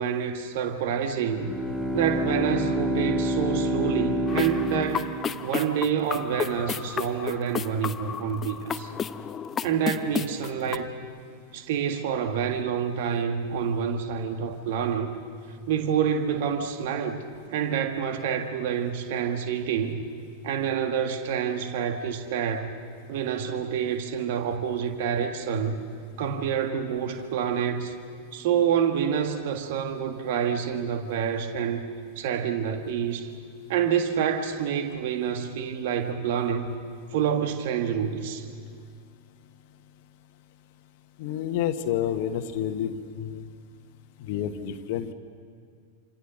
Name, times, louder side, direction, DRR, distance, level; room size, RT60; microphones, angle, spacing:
voice 1, 0.0-1.6 1.9-5.1 5.4-8.9 9.6-10.9 11.5-15.1 15.7-20.0 20.4-22.7 23.1-25.8 26.2-27.9 28.3-31.8 32.1-33.3 33.7-36.7 37.1-38.5, right 7 dB, 50° right, 7 dB, 1.7 m, -27 dB
Bowed string instrument, 1.2-5.8, equal, 5° right, 4.3 m, -28 dB
sound 1, 4.3-10.8, left 7 dB, 20° left, 0.7 m, -33 dB
voice 2, 41.2-43.5 44.2-45.1, left 10 dB, 50° left, 8 dB, 1.3 m, -29 dB
27.5 x 26.5 x 6.5 m, 2.2 s
figure-of-eight pair, 90°, 0 cm